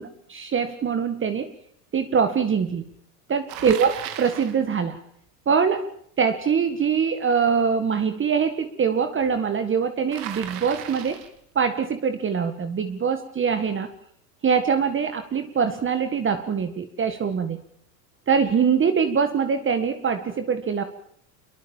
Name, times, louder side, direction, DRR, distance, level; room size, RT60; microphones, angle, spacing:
voice 1, 0.0-1.5 1.9-2.9 3.3-5.0 5.5-5.9 6.2-11.2 11.6-13.9 14.4-17.6 18.3-20.8, right 6 dB, 25° right, 8 dB, 1.9 m, -23 dB
Bicycle, 3.5-4.6 10.1-11.4, right 10 dB, 60° right, 3.4 m, -36 dB
24.5 x 22.5 x 7.3 m, 0.63 s
hypercardioid pair, 100°, 48 cm